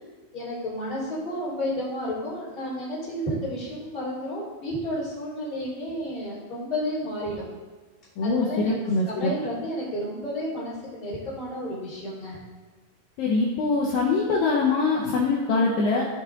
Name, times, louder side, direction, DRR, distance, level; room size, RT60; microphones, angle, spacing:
voice 1, 0.3-7.5 8.2-8.7 9.0-12.4, equal, 15° left, -9 dB, 2.9 m, -31 dB
voice 2, 8.2-9.3 13.2-16.1, left 3 dB, 70° left, -3 dB, 2.4 m, -23 dB
14.5 x 5.3 x 4.0 m, 1.3 s
omnidirectional pair, 4.6 m